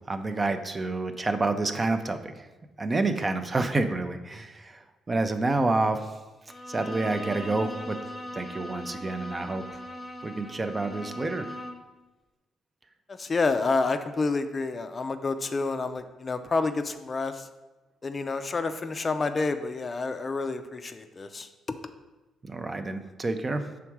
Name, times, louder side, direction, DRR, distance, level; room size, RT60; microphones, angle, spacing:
voice 1, 0.1-2.5 2.8-6.1 6.7-8.0 8.3-9.6 10.2-11.5 22.4-23.7, right 2 dB, 25° right, 8 dB, 0.5 m, -28 dB
Bowed string instrument, 6.5-11.9, left 1 dB, 15° left, 0.9 m, -39 dB
voice 2, 13.1-17.4 18.0-21.5, left 3 dB, 35° left, 9 dB, 0.4 m, -29 dB
5.8 x 3.5 x 4.6 m, 1.1 s
cardioid pair, 90°, 0 cm